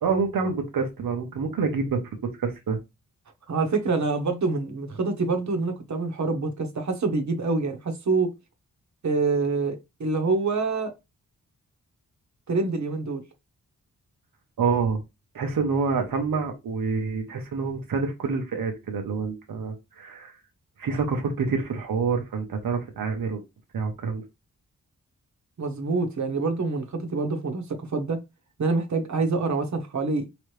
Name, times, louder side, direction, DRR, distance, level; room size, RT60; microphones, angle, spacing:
voice 1, 0.0-2.8 14.6-15.0 15.3-20.3 20.8-23.4 23.7-24.2, right 5 dB, 85° right, 1.1 m, -27 dB
voice 2, 3.5-8.3 9.0-10.9 12.5-13.2 25.6-28.2 28.6-30.2, right 3 dB, 60° right, 1.1 m, -26 dB
5.0 x 3.1 x 3.3 m
wide cardioid pair, 125°, 33 cm